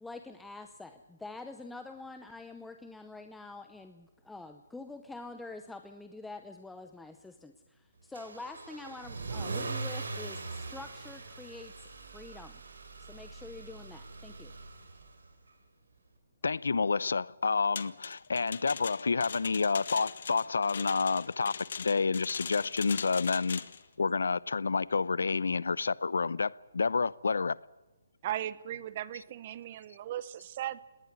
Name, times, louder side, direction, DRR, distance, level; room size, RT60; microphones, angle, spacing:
voice 1, 0.0-12.6 13.0-14.5, left 3 dB, 5° left, 0.8 m, -46 dB
Car / Engine starting / Accelerating revving vroom, 8.1-15.3, right 3 dB, 80° right, 6.2 m, -41 dB
voice 2, 16.4-23.6 24.0-27.6, left 4 dB, 85° left, 0.8 m, -29 dB
sound 1, 17.8-23.8, left 6 dB, 55° left, 1.6 m, -41 dB
voice 3, 28.2-30.8, right 12 dB, 30° right, 0.9 m, -37 dB
19.5 x 19.0 x 9.8 m
hypercardioid pair, 170°, 0 cm